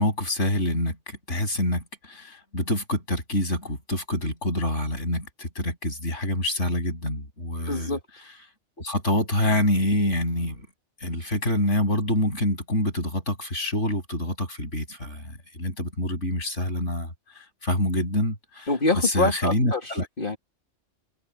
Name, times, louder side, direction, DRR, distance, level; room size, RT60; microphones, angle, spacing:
voice 1, 0.0-8.0 8.8-10.7 11.0-18.7 19.0-20.1, left 1 dB, 80° left, 8.5 m, -26 dB
voice 2, 7.7-8.0 18.7-20.4, left 2 dB, 45° left, 2.8 m, -25 dB
omnidirectional pair, 1.2 m